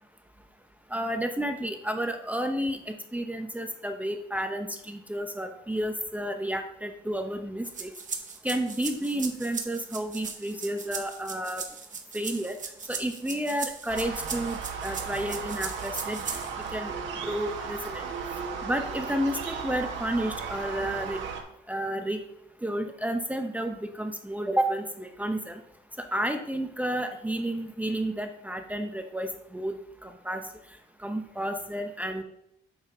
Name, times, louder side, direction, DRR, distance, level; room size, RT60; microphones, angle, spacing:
voice 1, 0.9-7.9 8.4-11.6 12.1-12.6 12.9-16.4 16.7-16.9 17.2-18.0 18.6-21.2 21.7-22.2 22.6-25.6 26.0-29.7 30.0-30.4 31.0-32.2, right 1 dB, 5° right, 5 dB, 0.7 m, -31 dB
sound 1, 7.6-16.7, right 5 dB, 40° right, 1.1 m, -38 dB
sound 2, 13.9-21.4, right 5 dB, 70° right, 1.4 m, -35 dB
8.7 x 7.2 x 2.7 m, 0.77 s
cardioid pair, 90°, 20 cm